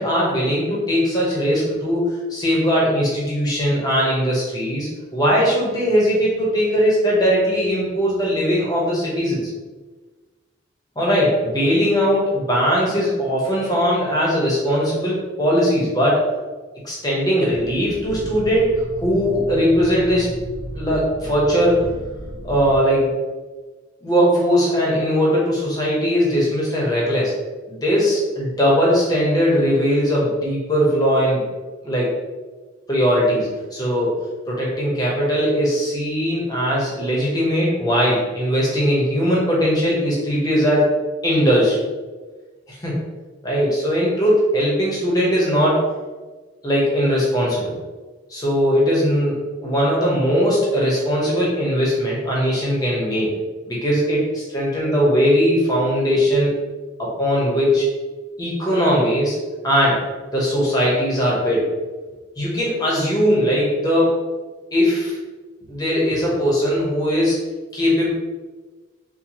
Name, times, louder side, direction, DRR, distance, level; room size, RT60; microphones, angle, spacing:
voice 1, 0.0-9.4 11.0-16.2 16.8-20.3 20.7-21.9 22.4-23.1 24.0-27.3 27.7-31.4 31.8-32.1 32.9-34.1 34.5-40.9 41.2-41.8 42.7-43.0 43.4-45.8 46.6-47.7 48.3-53.3 53.7-56.5 57.0-57.9 58.4-59.4 59.6-60.0 60.3-61.6 62.4-64.2 64.7-65.2 65.7-67.4 67.7-68.1, equal, 20° left, -4 dB, 0.9 m, -19 dB
sound 1, 17.5-22.8, equal, 70° left, 0.8 m, -34 dB
4.4 x 2.2 x 2.9 m, 1.3 s
head